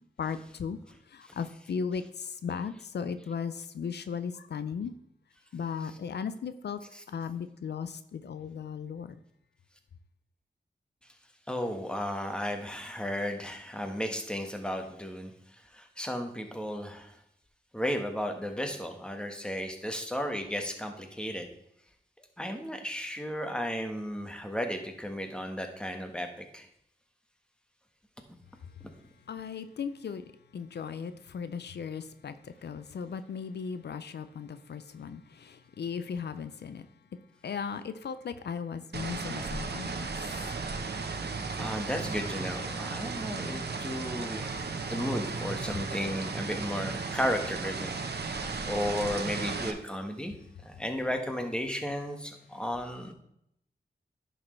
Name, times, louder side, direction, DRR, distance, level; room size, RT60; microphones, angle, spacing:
voice 1, 0.2-0.8 1.1-4.9 5.5-6.8 7.1-9.2 29.3-36.9 37.4-40.3, left 6 dB, 80° left, 0.5 m, -37 dB
voice 2, 11.5-17.2 17.7-21.5 22.2-26.7 41.6-48.0 48.6-50.3 50.6-53.1, equal, 5° left, 1.4 m, -34 dB
sound 1, 38.9-49.7, right 4 dB, 70° right, 0.9 m, -35 dB
10.5 x 6.3 x 3.2 m
wide cardioid pair, 70°, 17 cm